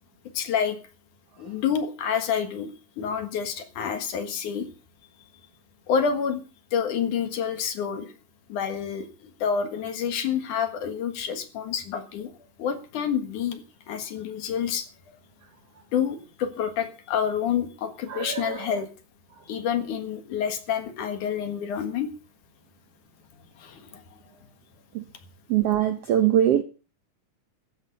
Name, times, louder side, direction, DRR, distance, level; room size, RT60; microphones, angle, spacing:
voice 1, 0.3-0.8 1.4-4.7 5.9-6.4 6.7-8.1 8.5-12.3 12.6-14.9 15.9-18.9 19.5-22.1 23.6-24.0, left 7 dB, 70° left, 3.1 m, -28 dB
voice 2, 18.1-18.8 24.9-25.1 25.5-26.6, right 11 dB, 75° right, 1.4 m, -23 dB
14.5 x 11.5 x 5.3 m
omnidirectional pair, 3.9 m